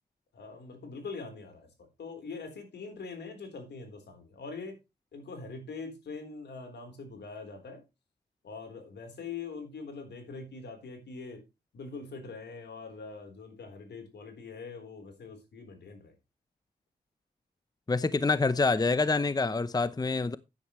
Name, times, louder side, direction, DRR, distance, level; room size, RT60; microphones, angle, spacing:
voice 1, 0.3-1.7 2.0-4.8 5.1-7.8 8.4-11.4 11.7-16.1, left 4 dB, 80° left, 3.9 m, -43 dB
voice 2, 17.9-20.4, left 3 dB, 20° left, 0.7 m, -26 dB
10.5 x 9.6 x 3.1 m
cardioid pair, 55°, 17 cm